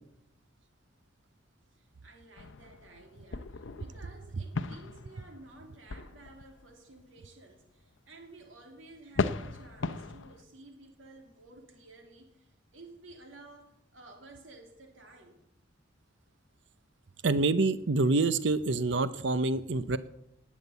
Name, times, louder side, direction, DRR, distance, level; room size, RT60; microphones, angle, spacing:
voice 1, 1.7-15.4, right 2 dB, 80° right, 3 dB, 2.9 m, -53 dB
sound 1, 2.4-6.7 8.0-8.1 9.1-10.4, left 4 dB, 75° left, 0.7 m, -37 dB
voice 2, 17.2-20.0, right 3 dB, 60° right, 14 dB, 0.7 m, -26 dB
19.0 x 7.3 x 8.1 m, 0.80 s
head